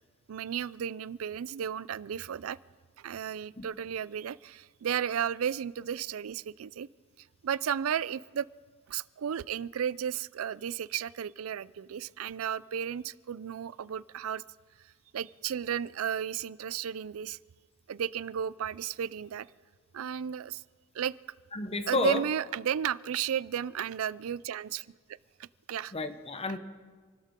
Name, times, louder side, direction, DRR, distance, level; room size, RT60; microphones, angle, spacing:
voice 1, 0.3-2.6 3.0-6.9 7.4-8.4 8.9-14.4 15.1-17.4 17.9-19.5 19.9-20.6 20.9-21.1 21.9-24.9 25.4-25.9, right 8 dB, 75° right, 19 dB, 0.4 m, -33 dB
voice 2, 21.5-22.2 25.9-26.6, left 3 dB, 30° left, 9 dB, 0.9 m, -31 dB
28.0 x 13.0 x 3.7 m, 1.5 s
head